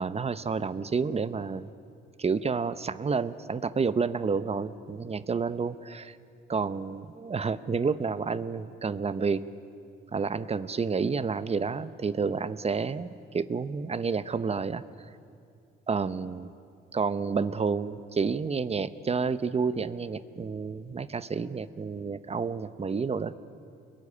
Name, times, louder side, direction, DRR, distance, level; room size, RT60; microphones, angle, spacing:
voice 1, 0.0-1.7 2.2-6.2 6.5-9.4 10.1-14.8 15.9-16.5 16.9-23.3, right 5 dB, 30° right, 14 dB, 0.9 m, -30 dB
25.0 x 21.5 x 9.9 m, 2.4 s
cardioid pair, 90°, 20 cm